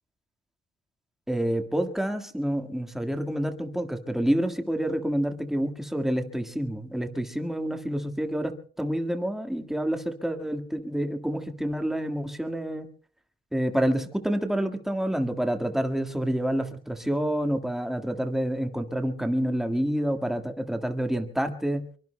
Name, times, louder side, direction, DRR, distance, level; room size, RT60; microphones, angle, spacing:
voice 1, 1.3-12.9 13.5-21.9, right 1 dB, ahead, 6 dB, 1.7 m, -28 dB
24.0 x 23.5 x 2.2 m, 0.43 s
cardioid pair, 90°, 20 cm